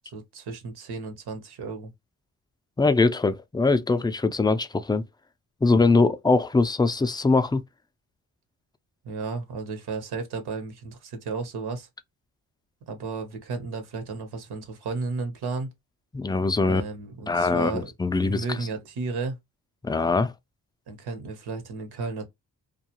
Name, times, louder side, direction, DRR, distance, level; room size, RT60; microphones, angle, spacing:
voice 1, 0.1-1.9 9.0-11.9 12.9-15.7 16.6-17.9 18.2-19.4 20.9-22.3, right 4 dB, 80° right, 1.0 m, -33 dB
voice 2, 2.8-5.0 5.6-7.6 16.1-16.8 17.3-18.4 19.8-20.3, left 3 dB, 10° left, 0.3 m, -22 dB
2.3 x 2.3 x 2.8 m
cardioid pair, 70°, 39 cm